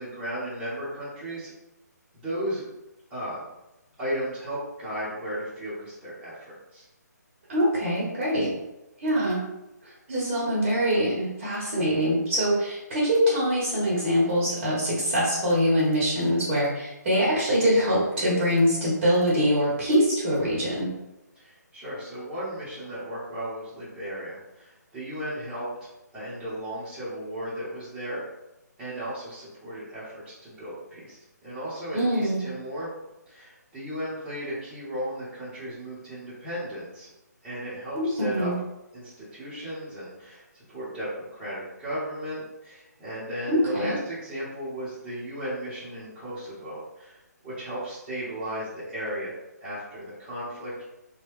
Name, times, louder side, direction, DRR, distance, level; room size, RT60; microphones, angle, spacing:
voice 1, 0.0-1.5 2.1-2.6 3.1-3.4 4.0-6.8 21.3-25.9 26.1-28.2 28.8-32.9 33.3-37.1 37.4-38.5 38.9-47.2 47.4-49.3 49.6-50.7, equal, 5° right, -12 dB, 1.1 m, -35 dB
voice 2, 7.5-8.5 9.0-9.4 9.8-20.9 31.9-32.5 37.9-38.6 43.5-44.0, equal, 30° right, -6 dB, 1.0 m, -24 dB
3.0 x 2.4 x 3.1 m, 0.95 s
figure-of-eight pair, 150°, 10 cm